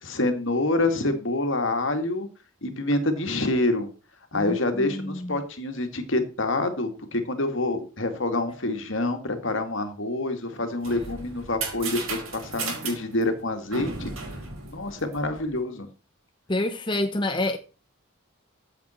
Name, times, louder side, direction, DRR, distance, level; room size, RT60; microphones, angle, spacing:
voice 1, 0.0-2.3 2.6-3.9 4.3-14.1 14.7-15.9, left 2 dB, 65° left, 2.1 m, -27 dB
voice 2, 4.3-5.4 16.5-17.6, left 2 dB, 20° left, 0.8 m, -28 dB
sound 1, 10.5-15.5, right 4 dB, 80° right, 5.0 m, -35 dB
14.5 x 7.9 x 4.4 m
head